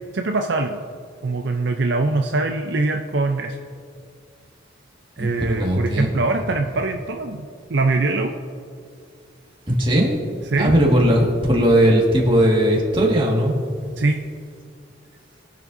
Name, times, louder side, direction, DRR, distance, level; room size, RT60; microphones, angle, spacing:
voice 1, 0.1-0.8 1.2-3.6 5.2-8.3 10.5-10.7 14.0-14.2, right 3 dB, 60° right, 4 dB, 0.5 m, -22 dB
voice 2, 5.2-6.1 9.7-10.2 10.6-13.5, equal, 25° right, -2 dB, 1.8 m, -18 dB
22.0 x 7.4 x 2.7 m, 2.3 s
head